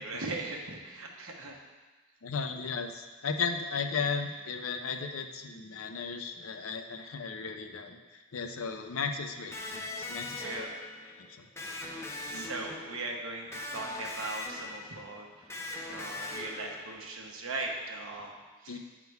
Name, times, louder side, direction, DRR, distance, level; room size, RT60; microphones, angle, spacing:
voice 1, 0.0-1.5 4.0-4.1 10.4-10.7 11.9-18.3 18.6-18.8, right 2 dB, 75° right, 0 dB, 1.1 m, -39 dB
voice 2, 2.2-10.5 11.2-11.5 12.3-12.6 18.7-18.8, left 5 dB, 70° left, 6 dB, 0.6 m, -35 dB
Electric guitar, 9.5-17.2, left 2 dB, 10° left, 0.6 m, -41 dB
9.5 x 3.7 x 4.6 m, 1.3 s
head